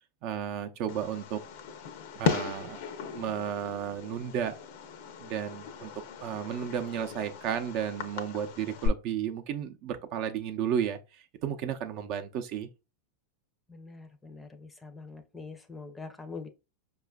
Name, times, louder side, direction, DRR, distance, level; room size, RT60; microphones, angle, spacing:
voice 1, 0.2-1.4 2.2-4.6 5.2-5.9 6.2-12.7, right 9 dB, 50° right, 0.6 m, -33 dB
Fireworks, 0.9-8.9, left 7 dB, 60° left, 0.6 m, -36 dB
voice 2, 13.7-16.5, left 4 dB, 10° left, 0.6 m, -44 dB
4.8 x 2.4 x 2.3 m
hypercardioid pair, 115°, 0 cm